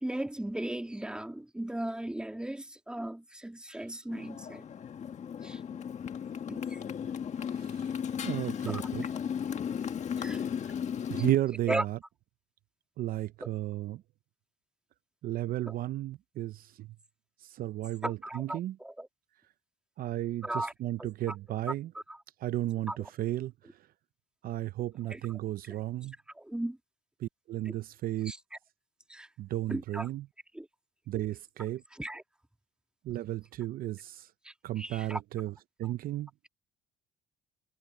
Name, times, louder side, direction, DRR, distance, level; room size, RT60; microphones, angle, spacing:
voice 1, 0.0-4.6 5.4-5.6 6.5-6.8 8.6-8.8 10.2-10.4 11.7-11.8 13.4-13.5 15.7-15.8 18.0-19.1 20.4-20.7 21.0-21.3 21.6-21.7 22.1-22.2 22.9-23.0 25.1-25.2 26.4-26.8 27.6-27.7 28.2-28.4 29.1-29.3 29.7-30.1 30.5-30.7 31.9-32.2 34.4-35.2 35.8-35.9, right 1 dB, 5° right, 1.7 m, -36 dB
Motorcycle, 4.1-11.3, left 8 dB, 45° left, 1.6 m, -35 dB
voice 2, 7.5-7.9 8.2-9.0 11.1-12.0 13.0-14.0 15.2-16.9 17.4-18.8 20.0-21.9 22.4-23.5 24.4-26.1 27.2-28.3 29.4-30.2 31.1-31.8 33.0-34.3 34.6-35.5 35.8-36.3, right 14 dB, 60° right, 0.5 m, -33 dB
cardioid pair, 110°, 17 cm